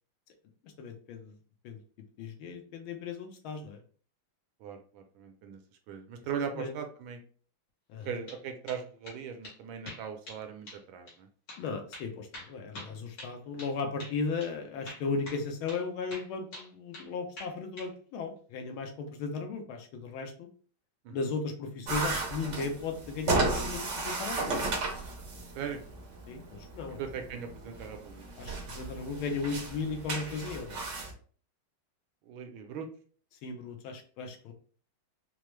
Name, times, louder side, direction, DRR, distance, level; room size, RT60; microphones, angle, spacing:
voice 1, 0.8-1.3 1.6-1.8 2.2-3.8 6.5-6.7 7.9-8.1 11.6-20.5 21.1-24.7 26.3-27.0 28.4-30.8 33.4-34.5, left 4 dB, 75° left, 4 dB, 1.5 m, -36 dB
voice 2, 4.6-5.6 5.9-7.2 8.0-11.3 21.0-21.3 25.5-25.8 27.0-28.2 32.2-32.9, right 7 dB, 75° right, 5 dB, 1.3 m, -39 dB
sound 1, 8.0-8.4 8.7-9.2 9.4-9.6 9.9-10.4 10.7-10.8 11.1-11.2 11.5-11.6 11.9-13.7 14.0-14.2 14.4-14.5 14.9-15.4 15.7-15.8 16.1-17.1 17.4-17.9, left 1 dB, 60° left, 2.0 m, -45 dB
sound 2, 21.9-31.1, right 3 dB, 60° right, 0.8 m, -34 dB
4.6 x 2.0 x 3.1 m, 0.43 s
omnidirectional pair, 2.3 m